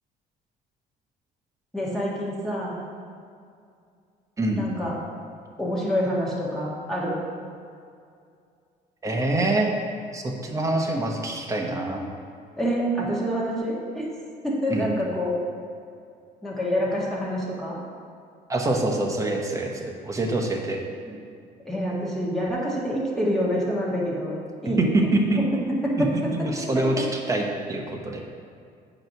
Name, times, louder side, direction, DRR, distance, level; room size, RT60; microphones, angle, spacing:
voice 1, 1.7-2.8 4.6-5.0 5.6-7.2 12.6-14.1 14.4-15.3 16.4-17.8 21.6-24.4 24.6-24.9 25.7-26.3, equal, ahead, -6 dB, 1.7 m, -27 dB
voice 2, 9.0-9.7 10.1-12.1 14.7-14.9 18.5-20.8 24.8-25.4 26.0-28.2, right 2 dB, 20° right, 1 dB, 1.0 m, -25 dB
8.7 x 3.0 x 5.9 m, 2.3 s
cardioid pair, 110°, 17 cm